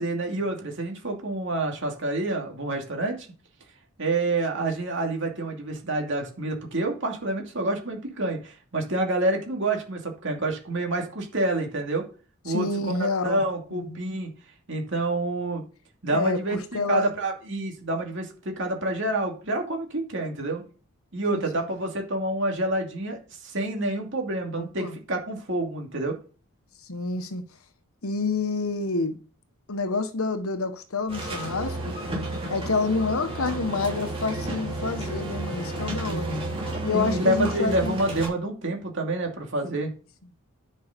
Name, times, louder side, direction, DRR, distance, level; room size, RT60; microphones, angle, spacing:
voice 1, 0.0-3.3 4.0-12.0 12.4-13.0 13.2-14.3 14.7-15.6 16.0-20.6 21.1-26.2 36.0-36.5 36.9-39.9, right 2 dB, 55° right, 2.6 m, -28 dB
voice 2, 12.5-13.4 13.7-14.0 16.1-17.1 21.3-21.6 24.6-25.0 26.8-27.5 28.0-29.2 29.7-31.9 32.5-36.3 36.8-38.0, left 3 dB, 75° left, 1.2 m, -28 dB
sound 1, 31.1-38.3, right 1 dB, 25° right, 3.7 m, -32 dB
10.0 x 5.6 x 5.2 m
head